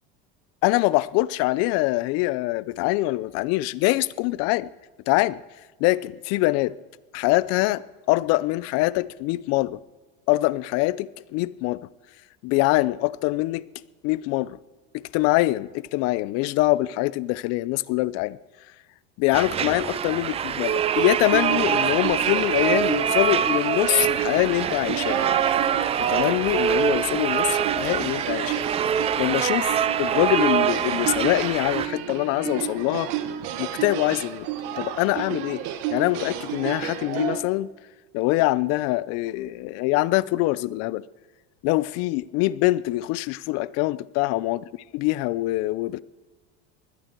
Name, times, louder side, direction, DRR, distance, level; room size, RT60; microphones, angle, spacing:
voice 1, 0.6-4.7 5.1-5.4 5.8-6.7 7.1-7.8 8.1-9.8 10.3-11.8 12.4-13.6 14.0-14.6 15.1-18.4 19.2-25.2 26.0-28.7 29.2-33.1 33.6-34.5 34.8-35.6 35.9-37.7 38.1-41.0 41.6-44.6 44.9-46.0, left 19 dB, 50° left, 0.6 m, -24 dB
sound 1, 19.3-31.9, right 9 dB, 20° right, 0.4 m, -24 dB
sound 2, 20.9-37.4, right 10 dB, 60° right, 1.5 m, -32 dB
20.5 x 12.0 x 4.6 m
supercardioid pair, 135°, 31 cm